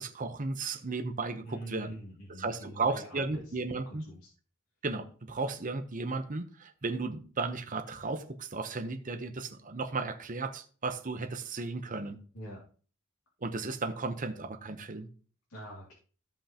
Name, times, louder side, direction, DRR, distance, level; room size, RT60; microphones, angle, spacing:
voice 1, 0.0-2.0 2.4-4.0 4.8-12.2 13.4-15.1, right 3 dB, 40° right, 0.9 m, -35 dB
voice 2, 1.4-3.6 3.9-4.3 12.3-12.6 15.5-16.0, right 1 dB, 80° left, 2.6 m, -44 dB
15.0 x 5.6 x 2.9 m
head